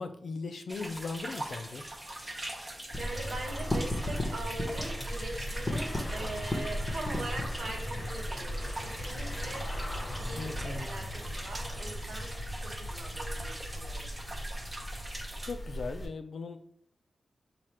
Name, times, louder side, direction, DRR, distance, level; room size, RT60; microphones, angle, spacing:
voice 1, 0.0-1.9 10.4-10.9 15.4-16.6, left 4 dB, 65° left, 7 dB, 0.4 m, -38 dB
sound 1, 0.7-15.5, right 1 dB, 15° right, 0.7 m, -42 dB
voice 2, 2.3-14.1, right 2 dB, 70° right, 0 dB, 1.1 m, -42 dB
sound 2, 2.9-16.1, left 1 dB, 25° left, 0.8 m, -36 dB
4.3 x 2.4 x 4.8 m, 0.64 s
wide cardioid pair, 120°, 0 cm